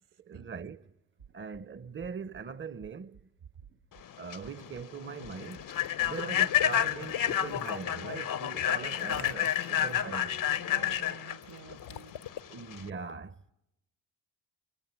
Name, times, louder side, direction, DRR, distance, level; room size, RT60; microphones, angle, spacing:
voice 1, 0.2-0.9 1.3-3.3 4.2-5.7 6.0-10.4 12.5-13.4, right 5 dB, 25° right, 0.9 m, -41 dB
sound 1, 1.2-1.6 2.0-2.4 2.8-3.2 3.6-4.0 4.4-4.8 5.2-5.6 6.0-6.2, right 7 dB, 90° right, 2.0 m, -54 dB
Human voice / Train, 4.0-12.9, left 11 dB, 50° left, 0.9 m, -30 dB
Water / Liquid, 5.3-7.8 8.9-9.9 11.4-12.4, left 11 dB, 70° left, 1.0 m, -42 dB
voice 2, 10.0-12.1, right 8 dB, 70° right, 2.5 m, -50 dB
27.5 x 23.0 x 8.2 m
hypercardioid pair, 50°, 44 cm